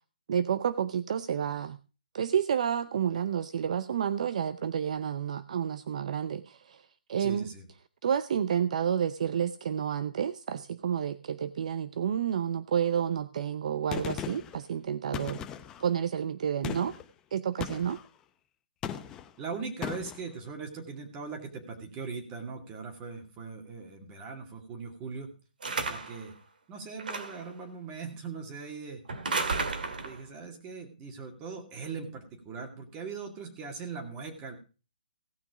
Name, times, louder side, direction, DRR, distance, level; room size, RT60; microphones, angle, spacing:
voice 1, 0.3-1.8 2.1-7.5 8.0-15.4 15.8-17.0 17.3-18.0, right 8 dB, 50° right, 14 dB, 0.6 m, -30 dB
voice 2, 7.2-7.6 19.4-25.3 25.8-26.3 26.7-29.0 29.6-34.6, right 5 dB, 20° right, 4 dB, 2.3 m, -40 dB
Gunshot gunfire, 13.9-14.6 15.1-15.9 16.6-17.0 17.6-18.1 18.8-19.3 19.8-20.2, left 9 dB, 15° left, 0.6 m, -37 dB
sound 1, 25.6-26.2 27.0-27.5 29.1-30.2, right 3 dB, 75° right, 2.1 m, -32 dB
17.0 x 6.1 x 4.9 m, 0.35 s
hypercardioid pair, 165°, 5 cm